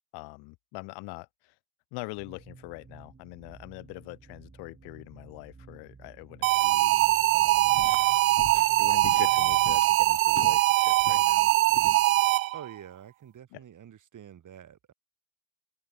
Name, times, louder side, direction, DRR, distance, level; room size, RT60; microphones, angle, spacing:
voice 1, 0.1-1.5 1.9-7.8 8.8-11.5 13.5-13.6, left 26 dB, 70° left, 2.9 m, -43 dB
sound 1, 2.2-9.8, right 4 dB, 25° right, 3.5 m, -52 dB
sound 2, 6.4-12.7, right 18 dB, 85° right, 0.5 m, -22 dB
sound 3, 7.5-10.7 11.0-12.0, left 15 dB, 50° left, 1.0 m, -44 dB
voice 2, 12.5-14.9, right 9 dB, 45° right, 3.5 m, -47 dB
open air
figure-of-eight pair, 50°, 41 cm